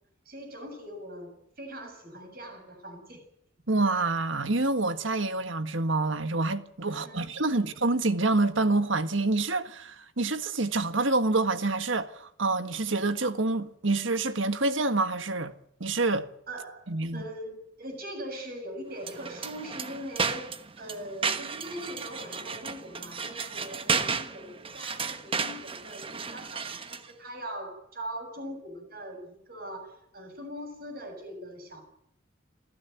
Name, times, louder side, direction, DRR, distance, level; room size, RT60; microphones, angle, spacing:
voice 1, 0.3-3.2 6.9-7.7 16.5-31.8, equal, 45° right, 7.2 m, -41 dB
voice 2, 3.7-15.5 15.8-16.3 16.9-17.2, right 2 dB, 70° right, 1.6 m, -27 dB
sound 1, 19.0-27.1, right 5 dB, 25° right, 1.2 m, -33 dB
27.0 x 15.0 x 9.2 m
head